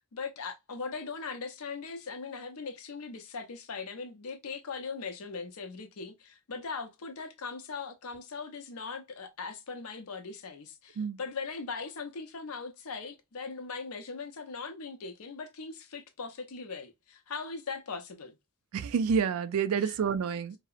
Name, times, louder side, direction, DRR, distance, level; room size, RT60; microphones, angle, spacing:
voice 1, 0.1-18.4 19.8-20.0, left 4 dB, 80° left, 0.6 m, -40 dB
voice 2, 18.7-20.6, right 6 dB, 80° right, 0.3 m, -28 dB
2.7 x 2.0 x 2.4 m
head